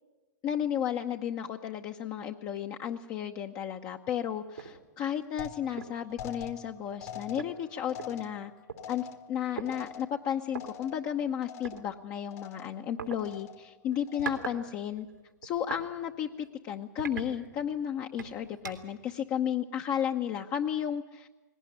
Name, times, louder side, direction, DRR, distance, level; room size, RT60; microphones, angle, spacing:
voice 1, 0.4-8.5 8.9-15.1 15.4-21.3, left 9 dB, 35° left, 3 dB, 0.9 m, -33 dB
sound 1, 4.6-4.8 5.2-5.3 5.8-6.0 7.0-7.1 7.4-8.8 9.6-9.7 10.5-10.6 11.6-11.8 13.0-13.2 13.9-14.6 14.9-15.9 16.3-16.5 17.0-17.8 18.2-19.0, right 6 dB, 90° right, 2.7 m, -40 dB
sound 2, 5.4-11.2 11.4-12.0 12.3-12.9 13.2-13.7 14.1-14.6, left 8 dB, 50° left, 1.6 m, -46 dB
19.5 x 17.5 x 9.9 m, 1.1 s
hypercardioid pair, 110°, 10 cm